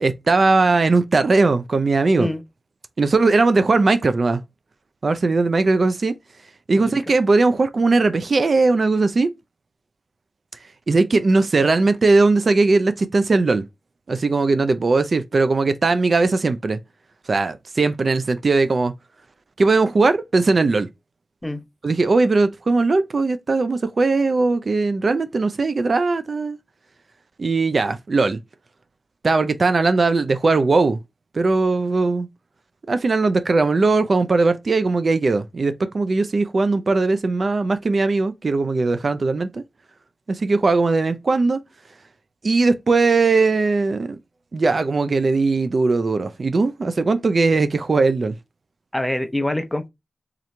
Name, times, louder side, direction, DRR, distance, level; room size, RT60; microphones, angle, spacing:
voice 1, 0.0-2.3 3.0-4.4 5.0-6.2 6.7-9.3 10.9-13.6 14.1-16.8 17.3-18.9 19.6-20.9 21.8-26.6 27.4-28.4 29.2-31.0 31.3-32.3 32.9-39.6 40.3-41.6 42.4-44.2 44.5-48.3, right 3 dB, 60° right, 0.4 m, -19 dB
voice 2, 48.9-49.9, left 1 dB, 10° left, 0.7 m, -25 dB
3.6 x 3.0 x 3.2 m
cardioid pair, 50°, 0 cm